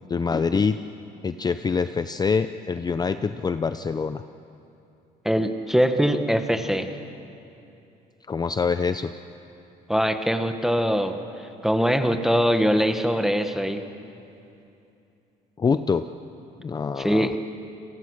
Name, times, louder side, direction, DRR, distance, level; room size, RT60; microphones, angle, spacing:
voice 1, 0.1-0.8 1.2-4.2 8.3-9.1 15.6-16.1 16.6-17.4, left 5 dB, 25° left, 11 dB, 0.6 m, -25 dB
voice 2, 5.2-6.9 9.9-13.8 17.0-17.3, equal, ahead, 7 dB, 1.3 m, -22 dB
29.0 x 19.5 x 6.5 m, 2.7 s
cardioid pair, 110°, 17 cm